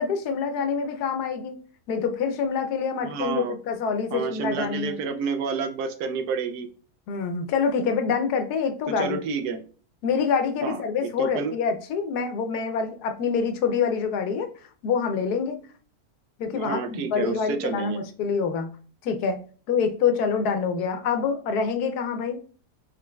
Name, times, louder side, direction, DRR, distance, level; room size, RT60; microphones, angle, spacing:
voice 1, 0.0-1.6 1.9-5.0 7.1-9.2 10.0-14.5 14.8-15.6 16.4-18.7 19.0-19.4 19.7-22.4, left 6 dB, 75° left, 7 dB, 1.2 m, -26 dB
voice 2, 3.0-3.6 4.1-6.7 8.9-9.6 10.6-11.5 16.5-18.0, right 5 dB, 75° right, 7 dB, 1.1 m, -29 dB
3.8 x 3.7 x 2.2 m, 0.41 s
omnidirectional pair, 1.7 m